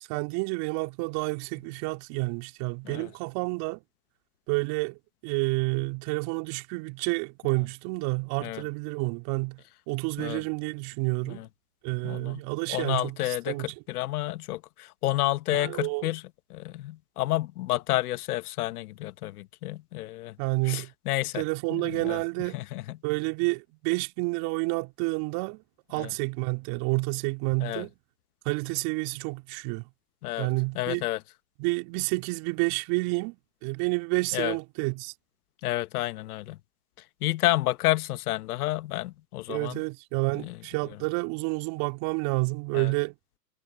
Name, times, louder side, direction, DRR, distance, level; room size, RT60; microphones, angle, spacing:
voice 1, 0.1-3.8 4.5-5.0 5.2-11.4 11.8-13.7 15.5-16.1 20.4-20.9 21.4-22.6 23.0-25.6 25.9-27.9 28.5-29.8 30.4-31.1 31.6-35.1 39.5-43.2, right 28 dB, 45° right, 3.4 m, -29 dB
voice 2, 12.0-12.4 12.7-16.2 16.5-20.4 20.7-21.4 21.7-22.2 22.5-23.0 25.9-26.1 27.6-27.9 30.2-30.5 30.7-31.2 34.3-34.6 35.6-36.6 37.2-39.8 40.4-40.5 42.7-42.9, left 16 dB, 60° left, 1.4 m, -30 dB
hypercardioid pair, 110°, 49 cm